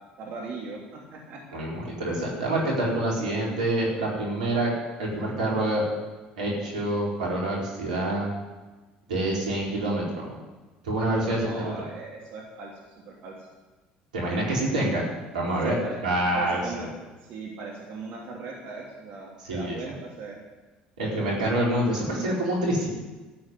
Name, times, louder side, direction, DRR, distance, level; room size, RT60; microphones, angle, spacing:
voice 1, 0.2-1.4 11.0-12.7 13.0-13.5 15.6-16.0 16.3-16.8 17.2-20.4 21.0-21.5, right 3 dB, 60° right, -2 dB, 3.0 m, -39 dB
voice 2, 1.5-4.7 5.0-5.8 6.4-8.3 9.1-10.3 10.8-11.7 14.1-15.1 15.3-15.7 16.0-16.9 19.5-19.9 21.0-22.9, right 1 dB, 85° right, -4 dB, 4.4 m, -26 dB
13.5 x 8.7 x 9.7 m, 1.2 s
hypercardioid pair, 65°, 4 cm